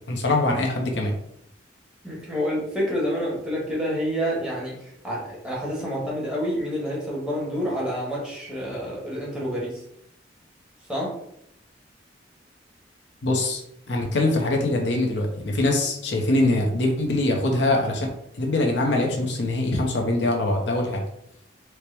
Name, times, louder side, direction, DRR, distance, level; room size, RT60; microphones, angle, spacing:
voice 1, 0.1-1.1 13.2-13.6 13.9-18.1 18.3-21.0, left 2 dB, 65° left, 1 dB, 0.7 m, -23 dB
voice 2, 2.0-9.8 10.9-11.1, equal, 5° right, -5 dB, 1.2 m, -28 dB
4.4 x 2.1 x 3.3 m, 0.74 s
head